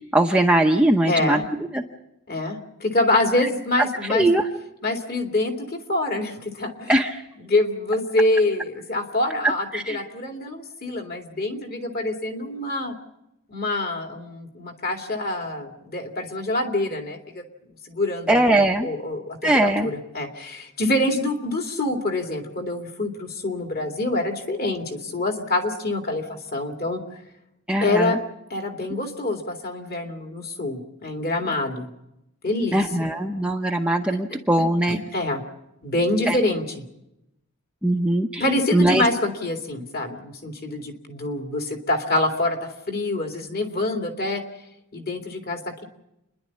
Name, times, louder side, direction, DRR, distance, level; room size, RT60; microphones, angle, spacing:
voice 1, 0.0-1.4 1.7-1.8 4.1-4.4 6.9-7.2 9.7-10.0 18.3-18.9 19.4-19.9 27.7-28.2 32.7-35.0 36.3-36.4 37.8-38.4 38.7-39.1, right 1 dB, 5° right, 2 dB, 0.8 m, -20 dB
voice 2, 1.1-1.4 2.3-4.3 4.8-6.9 7.4-12.9 13.5-17.4 17.8-27.0 27.8-28.2 28.5-31.9 32.4-32.8 34.9-35.4 35.8-36.8 38.4-42.6 42.9-44.4 44.9-45.8, left 2 dB, 40° left, 3 dB, 2.5 m, -26 dB
29.5 x 11.0 x 8.5 m, 0.87 s
head